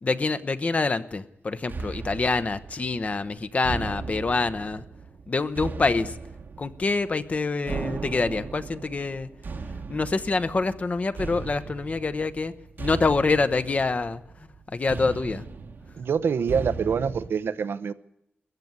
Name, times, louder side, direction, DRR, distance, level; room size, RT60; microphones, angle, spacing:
voice 1, 0.0-4.8 5.3-6.1 6.6-9.3 9.9-12.5 12.8-14.2 14.7-15.4, left 3 dB, 40° left, 13 dB, 0.9 m, -26 dB
sound 1, 1.7-17.3, right 4 dB, 60° right, 1.1 m, -37 dB
voice 2, 16.0-17.9, right 6 dB, 85° right, 12 dB, 0.8 m, -25 dB
21.0 x 14.5 x 9.6 m, 0.81 s
wide cardioid pair, 115°, 4 cm